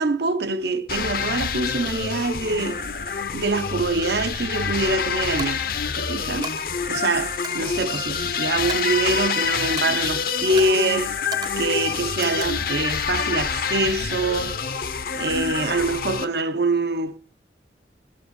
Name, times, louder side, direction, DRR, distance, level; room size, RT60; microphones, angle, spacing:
voice 1, 0.0-2.8 3.3-5.6 6.0-6.5 6.9-11.1 11.6-14.6 15.1-17.2, right 2 dB, 65° right, 0.8 m, -24 dB
sound 1, 0.9-16.3, left 6 dB, 50° left, 0.7 m, -27 dB
Coin (dropping), 4.5-4.7 5.4-5.9 6.4-6.6 7.4-8.3 8.7-9.4 9.8-10.1 10.6-10.9 11.3-11.8 12.2-12.8, right 5 dB, 25° right, 0.4 m, -37 dB
12.0 x 6.7 x 5.3 m
head